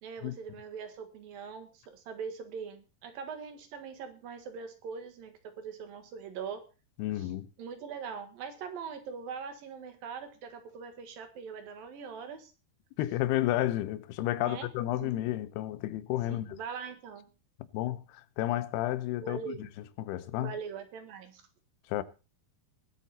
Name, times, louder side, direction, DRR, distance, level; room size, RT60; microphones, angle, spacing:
voice 1, 0.0-6.6 7.2-7.3 7.6-12.5 14.4-14.7 15.0-15.1 16.3-17.3 19.2-19.7 20.4-21.4, right 6 dB, 65° right, 3.3 m, -42 dB
voice 2, 7.0-7.5 13.0-16.6 17.7-19.7 20.0-20.5 21.9-22.0, left 14 dB, 90° left, 2.8 m, -31 dB
20.5 x 8.2 x 4.1 m
omnidirectional pair, 4.6 m